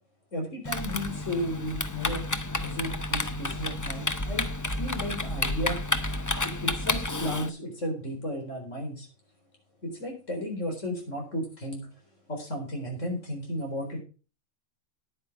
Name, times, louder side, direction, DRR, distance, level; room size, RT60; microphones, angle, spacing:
voice 1, 0.3-2.2 2.6-4.5 4.8-5.8 6.1-6.3 6.6-9.1 9.8-11.9 12.3-14.0, equal, 60° left, 1 dB, 4.4 m, -34 dB
Typing, 0.6-7.5, left 2 dB, 20° left, 0.5 m, -30 dB
10.0 x 9.7 x 4.9 m, 0.35 s
omnidirectional pair, 1.5 m